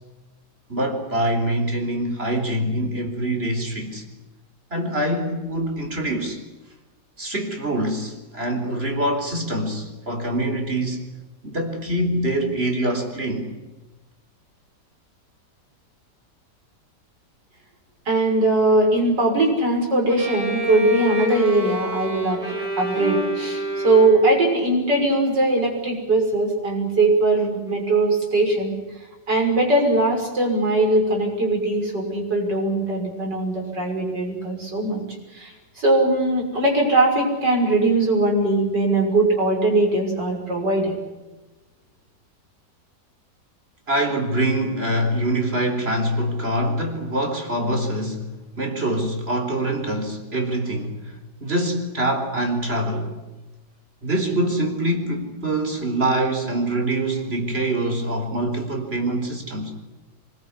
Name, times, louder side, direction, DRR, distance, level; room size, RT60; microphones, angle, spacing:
voice 1, 0.7-4.0 4.7-6.4 7.2-11.0 11.4-13.5 43.9-51.1 51.4-53.1 54.0-59.7, right 1 dB, 35° right, 4 dB, 4.4 m, -24 dB
voice 2, 18.1-28.7 29.3-35.0 35.3-41.0, right 2 dB, 80° right, 1 dB, 6.7 m, -20 dB
Bowed string instrument, 20.1-24.5, equal, 60° right, 5.9 m, -27 dB
24.0 x 21.0 x 9.8 m, 1.1 s
omnidirectional pair, 1.9 m